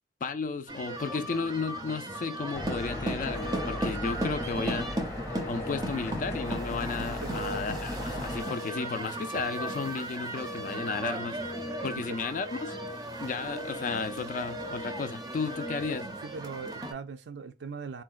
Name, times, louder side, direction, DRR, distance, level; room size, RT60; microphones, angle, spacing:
voice 1, 0.2-4.9 5.5-11.4 11.8-12.7 13.2-16.1, left 4 dB, 45° left, 0.3 m, -33 dB
sound 1, 0.7-16.9, right 1 dB, 20° right, 0.5 m, -36 dB
sound 2, 2.5-8.4, left 2 dB, 15° left, 0.7 m, -38 dB
Telephone, 3.3-3.8 4.3-4.9 5.3-5.9 6.3-6.9 7.3-7.9 8.4-8.9 9.4-10.0 10.4-11.0 11.4-12.0 12.4-13.0 13.4-14.0 14.5-15.1 15.5-16.1, left 1 dB, 85° left, 0.6 m, -42 dB
voice 2, 7.2-7.6 12.1-12.2 16.2-18.0, right 4 dB, 80° right, 0.4 m, -39 dB
3.8 x 2.1 x 2.4 m
head